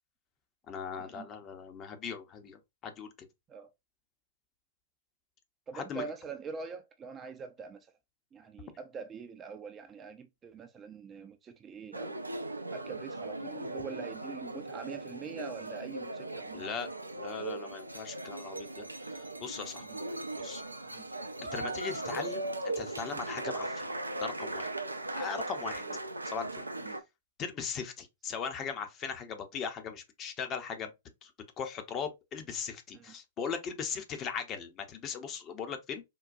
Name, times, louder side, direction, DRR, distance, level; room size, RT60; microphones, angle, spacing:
voice 1, 0.7-3.3 5.7-6.0 16.5-16.9 17.2-18.8 19.1-19.8 20.4-20.6 21.5-22.4 22.8-23.9 24.2-24.7 25.1-25.8 26.2-26.6 27.4-30.9 31.2-31.3 31.6-36.0, left 6 dB, 25° left, 0.7 m, -39 dB
voice 2, 5.7-7.9 8.3-12.2 12.7-16.6 19.9-20.0 20.9-21.0 25.8-26.0 26.8-27.0 32.9-33.1, right 5 dB, 20° right, 0.4 m, -44 dB
sound 1, 11.9-27.0, right 2 dB, 85° right, 0.4 m, -38 dB
3.8 x 2.2 x 2.5 m
figure-of-eight pair, 110°, 0 cm